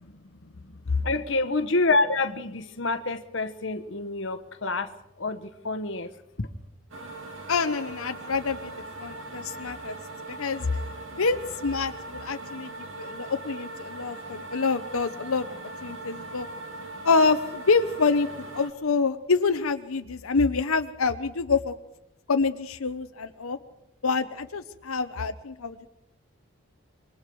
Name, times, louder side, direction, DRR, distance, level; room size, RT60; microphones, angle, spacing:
voice 1, 1.0-4.9 5.2-6.1 6.4-6.5, left 3 dB, 60° left, 9 dB, 1.1 m, -27 dB
sound 1, 6.9-18.7, right 2 dB, 70° right, 2.5 m, -40 dB
voice 2, 7.5-8.7 9.0-10.0 10.3-10.8 11.1-15.5 15.8-16.5 17.0-21.7 22.3-23.6 24.0-25.9, left 4 dB, 90° left, 8 dB, 0.9 m, -26 dB
26.5 x 22.5 x 4.7 m, 0.87 s
head